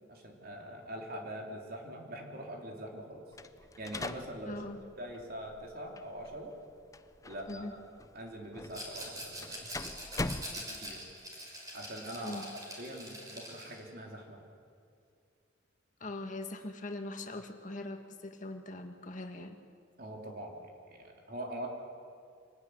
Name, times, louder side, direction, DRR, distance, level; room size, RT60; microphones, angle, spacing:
voice 1, 0.1-3.2 3.8-4.6 5.0-6.5 7.2-7.8 8.1-9.6 10.5-11.1 11.7-12.4 12.8-14.4 20.0-21.7, right 1 dB, 50° right, 1 dB, 3.8 m, -43 dB
sound 1, 3.3-11.1, left 2 dB, 15° left, 0.6 m, -43 dB
voice 2, 4.4-4.8 7.5-7.7 12.2-12.5 16.0-19.6, left 2 dB, 40° left, 5 dB, 2.0 m, -41 dB
Rattle, 8.7-13.8, equal, 20° right, 5.4 m, -44 dB
25.5 x 18.0 x 9.8 m, 2.4 s
head